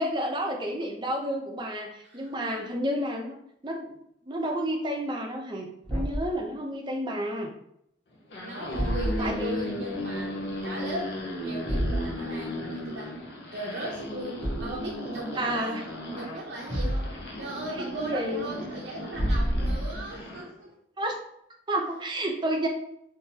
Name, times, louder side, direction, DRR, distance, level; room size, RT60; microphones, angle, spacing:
voice 1, 0.0-3.4 3.6-4.0 4.3-7.5 9.2-9.6 15.4-15.8 17.8-18.4 21.0-21.2 21.7-22.7, right 1 dB, 25° right, 1 dB, 0.5 m, -30 dB
voice 2, 2.1-2.6 8.4-13.1 13.5-20.7, right 1 dB, 85° right, -4 dB, 0.6 m, -38 dB
Thump thud, 5.8-6.4 8.7-9.4 11.7-12.1 14.4-14.9 16.7-17.3 19.1-20.1, equal, 15° left, 1.3 m, -28 dB
sound 1, 8.2-20.5, left 1 dB, 70° left, 0.8 m, -36 dB
3.8 x 2.7 x 2.7 m, 0.74 s
head